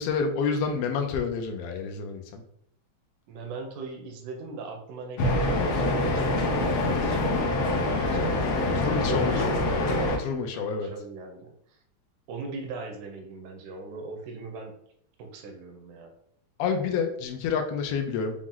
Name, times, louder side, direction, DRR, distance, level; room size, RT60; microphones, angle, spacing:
voice 1, 0.0-2.4 8.7-9.5 10.2-10.9 16.6-18.4, left 5 dB, 85° left, 4 dB, 1.3 m, -28 dB
voice 2, 3.3-8.4 9.1-9.6 10.5-11.8 12.3-14.7 15.2-16.1, right 3 dB, 90° right, 4 dB, 2.2 m, -40 dB
sound 1, 5.2-10.2, left 2 dB, 70° left, 1.6 m, -25 dB
5.8 x 2.0 x 3.7 m, 0.70 s
omnidirectional pair, 3.4 m